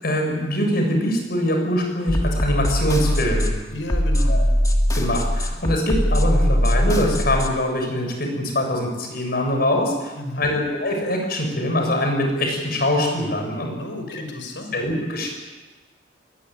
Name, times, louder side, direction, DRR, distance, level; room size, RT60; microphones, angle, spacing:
voice 1, 0.0-3.5 4.3-4.4 4.9-13.7 14.1-14.2 14.7-15.3, left 1 dB, 55° left, 3 dB, 7.2 m, -23 dB
sound 1, 2.1-7.5, equal, 20° left, 2.5 m, -21 dB
voice 2, 3.7-4.4 10.2-10.6 13.8-14.8, left 1 dB, 85° left, 6 dB, 5.4 m, -32 dB
22.5 x 20.0 x 9.2 m, 1.2 s
head